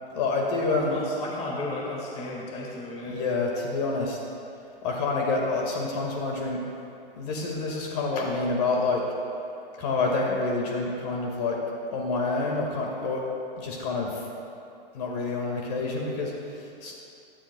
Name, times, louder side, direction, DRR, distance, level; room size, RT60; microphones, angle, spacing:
voice 1, 0.1-1.0 3.0-4.2 4.8-6.6 7.2-9.1 9.8-11.6 11.9-13.2 13.6-14.3 14.9-17.0, left 3 dB, 40° left, -1 dB, 1.9 m, -28 dB
voice 2, 0.7-3.2, left 2 dB, 20° left, -2 dB, 1.9 m, -34 dB
18.0 x 12.5 x 2.3 m, 2.7 s
hypercardioid pair, 145°, 30 cm